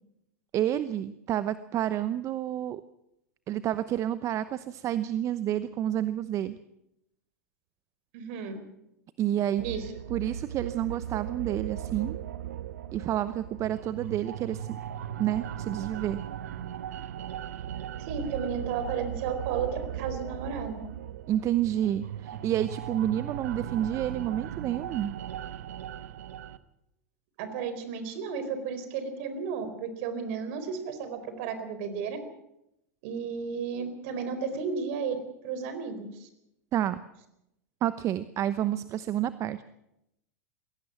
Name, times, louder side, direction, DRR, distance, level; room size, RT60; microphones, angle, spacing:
voice 1, 0.5-2.8 3.5-6.6 9.2-9.6 10.1-12.2 12.9-14.8 15.2-16.2 21.3-25.1 36.7-37.0 37.8-39.6, right 11 dB, 35° right, 14 dB, 0.9 m, -29 dB
voice 2, 8.1-8.6 9.6-9.9 18.0-20.8 27.4-32.2 33.0-35.2 35.4-36.3, right 6 dB, 60° right, 10 dB, 4.3 m, -33 dB
sound 1, 9.6-26.6, right 10 dB, 75° right, 1.2 m, -38 dB
22.0 x 17.0 x 7.3 m, 0.83 s
hypercardioid pair, 95°, 8 cm